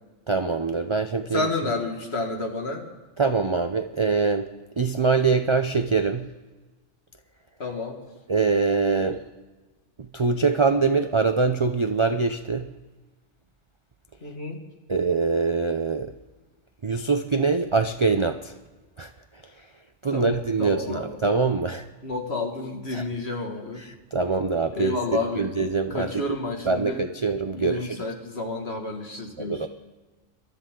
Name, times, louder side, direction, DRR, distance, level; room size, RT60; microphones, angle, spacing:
voice 1, 0.3-1.5 3.2-4.5 4.8-6.3 8.3-9.2 10.1-12.7 14.9-16.1 16.8-18.6 19.0-19.1 20.0-21.9 22.9-23.0 23.8-25.0 25.4-26.2 26.7-28.0 29.4-29.7, right 4 dB, 40° right, 7 dB, 0.4 m, -24 dB
voice 2, 1.3-2.8 7.6-8.0 14.2-14.6 20.1-21.1 22.0-23.8 24.7-25.6 25.9-27.0 27.5-29.7, left 3 dB, 55° left, 2 dB, 2.3 m, -30 dB
26.5 x 13.0 x 3.8 m, 1.2 s
omnidirectional pair, 1.3 m